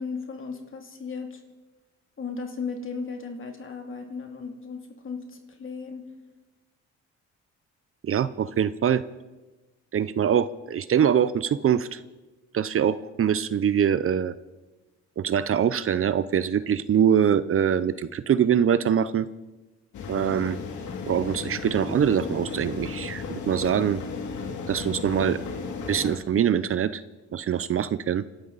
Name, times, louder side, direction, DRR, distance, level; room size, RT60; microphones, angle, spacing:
voice 1, 0.0-1.4 2.2-6.0, left 5 dB, 45° left, 3 dB, 2.8 m, -36 dB
voice 2, 8.0-9.0 9.9-12.0 12.5-14.3 15.2-19.3 20.1-20.6 21.1-24.0 24.7-25.4 25.9-27.0 27.3-28.2, right 8 dB, 45° right, 15 dB, 0.7 m, -23 dB
sound 1, 19.9-26.2, left 5 dB, 70° left, 2.5 m, -34 dB
27.0 x 13.0 x 4.1 m, 1.1 s
cardioid pair, 90°, 30 cm